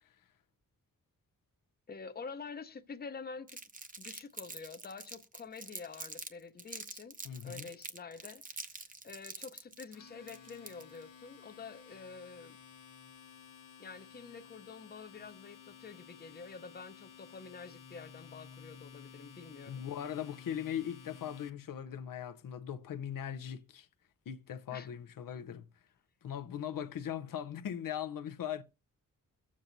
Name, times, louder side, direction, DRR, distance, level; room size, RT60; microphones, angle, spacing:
voice 1, 1.9-3.6 4.0-7.2 7.4-12.6 13.8-19.8 24.7-24.9, left 5 dB, 30° left, 0.7 m, -48 dB
Crumpling crinkling, 3.5-6.3 6.6-11.0, right 3 dB, 25° right, 0.8 m, -45 dB
voice 2, 7.2-7.7 19.7-23.9 24.3-25.6 26.2-28.6, left 9 dB, 90° left, 0.7 m, -39 dB
Domestic sounds home sounds, 9.6-21.5, left 7 dB, 70° left, 1.1 m, -54 dB
22.0 x 7.4 x 2.6 m
wide cardioid pair, 165°, 33 cm